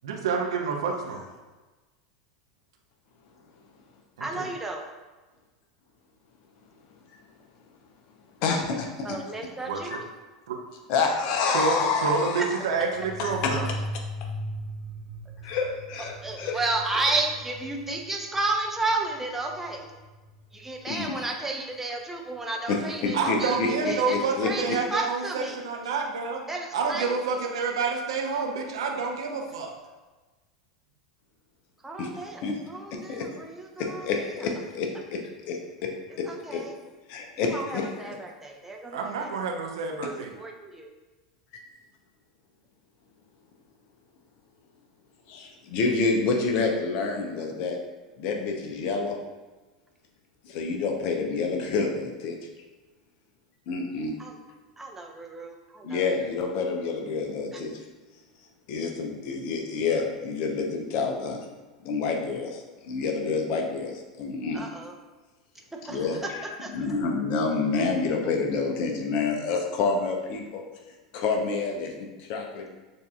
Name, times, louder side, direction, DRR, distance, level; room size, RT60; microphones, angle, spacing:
voice 1, 0.0-1.2 4.2-4.5 9.7-10.0 10.5-10.6 11.5-13.7 23.1-26.4 26.7-29.7 38.9-40.3, right 4 dB, 70° right, 1 dB, 0.7 m, -28 dB
voice 2, 4.2-4.8 9.0-9.9 16.2-19.9 20.5-25.6 26.5-27.1 31.8-32.4 32.7-34.5 36.2-36.7 37.4-39.3 40.4-40.9 54.2-54.4 54.8-56.1 57.5-57.6 64.5-64.9 65.8-66.1 66.6-66.7, right 2 dB, 10° right, 1 dB, 0.7 m, -32 dB
voice 3, 8.4-9.2 10.9-12.5 13.2-13.7 15.4-16.6 20.8-21.1 22.7-24.8 32.0-32.5 32.9-33.3 33.8-35.2 35.5-35.9 36.2-36.6 37.1-38.2 45.3-47.8 48.2-49.2 50.4-52.4 53.7-54.1 55.8-57.8 58.7-61.4 61.8-64.6 65.9-66.4 66.7-70.6 71.1-72.7, left 4 dB, 50° left, 2 dB, 0.7 m, -28 dB
sound 1, 12.7-21.1, equal, 10° left, 1.3 m, -39 dB
6.5 x 2.7 x 2.4 m, 1.2 s
figure-of-eight pair, 85°, 3 cm